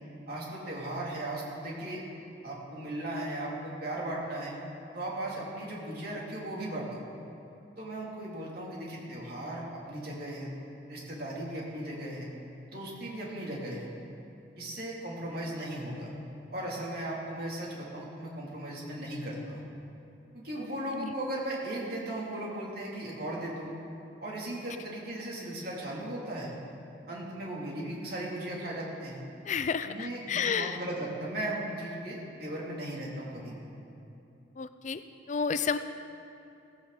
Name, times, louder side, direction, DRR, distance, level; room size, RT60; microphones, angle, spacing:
voice 1, 0.3-2.0 2.4-4.6 4.9-7.0 7.8-10.5 10.9-12.3 12.7-13.9 14.6-16.1 16.5-19.6 20.3-23.7 24.2-26.5 27.1-29.2 29.8-33.5, right 1 dB, 50° right, -4 dB, 3.4 m, -37 dB
voice 2, 29.4-30.8 34.6-35.0 35.3-35.8, left 6 dB, 40° left, 11 dB, 0.4 m, -31 dB
17.5 x 15.5 x 4.3 m, 2.8 s
head